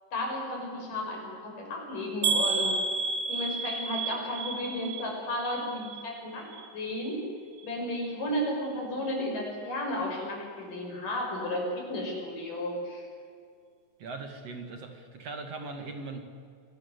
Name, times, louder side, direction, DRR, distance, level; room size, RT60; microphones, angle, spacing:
voice 1, 0.1-2.8 3.3-6.4 6.7-7.2 7.6-13.1, left 1 dB, 70° left, 0 dB, 7.8 m, -33 dB
sound 1, 2.2-6.2 6.5-7.1 7.6-7.7 8.1-8.2, right 4 dB, 70° right, 3.0 m, -31 dB
voice 2, 14.0-16.2, right 3 dB, 50° right, 5 dB, 3.0 m, -40 dB
26.5 x 19.5 x 8.2 m, 2.2 s
omnidirectional pair, 3.9 m